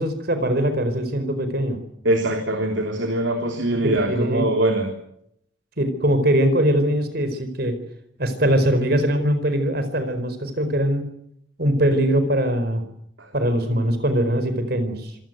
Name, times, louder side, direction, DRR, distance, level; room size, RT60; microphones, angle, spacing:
voice 1, 0.0-1.8 3.8-4.5 5.8-7.8 8.2-11.1 11.6-12.8 13.3-15.1, right 1 dB, 55° right, 10 dB, 4.5 m, -21 dB
voice 2, 2.0-4.9 13.2-13.3, right 1 dB, 75° right, 4 dB, 3.4 m, -22 dB
26.5 x 18.0 x 9.3 m, 0.74 s
head